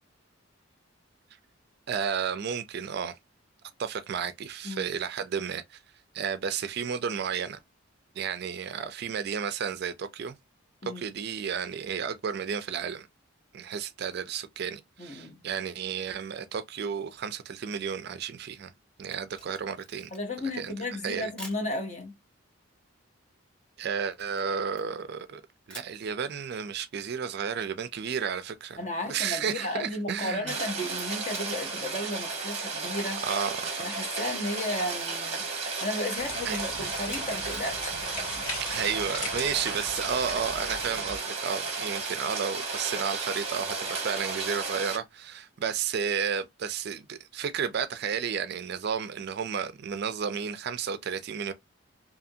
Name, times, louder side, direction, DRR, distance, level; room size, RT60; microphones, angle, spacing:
voice 1, 1.9-3.2 3.8-5.8 6.1-7.6 8.2-10.4 10.8-13.1 13.5-18.7 19.0-20.1 20.5-20.7 21.0-21.3 23.8-25.4 25.7-28.8 29.1-30.5 33.3-33.6 36.5-36.6 38.7-51.5, right 7 dB, 50° right, 0.3 m, -32 dB
voice 2, 15.0-15.4 20.1-22.1 28.8-33.2 33.8-38.2 38.6-38.7, left 1 dB, 35° left, 0.8 m, -34 dB
Camera, 19.0-20.4 21.4-21.7 24.1-25.3 25.7-26.0 28.7-30.2 31.3-31.7 32.0-32.1 34.1-35.5 35.8-36.3 37.0-37.7, right 1 dB, 5° left, 0.9 m, -50 dB
Rain, 30.5-45.0, right 4 dB, 30° right, 0.8 m, -33 dB
sound 1, 36.2-41.2, left 2 dB, 75° left, 1.8 m, -39 dB
2.8 x 2.5 x 2.6 m
head